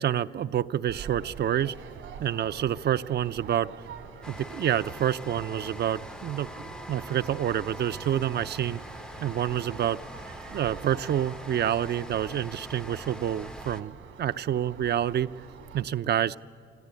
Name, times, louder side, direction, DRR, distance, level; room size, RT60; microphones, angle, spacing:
voice 1, 0.0-1.7 2.2-3.7 4.3-8.8 9.2-10.0 10.5-15.3 15.7-16.4, right 10 dB, 55° right, 13 dB, 0.5 m, -28 dB
sound 1, 0.9-15.8, right 7 dB, 85° right, 2.4 m, -46 dB
sound 2, 4.2-13.8, left 1 dB, 5° left, 0.5 m, -43 dB
26.0 x 14.5 x 9.7 m, 2.3 s
cardioid pair, 90°, 20 cm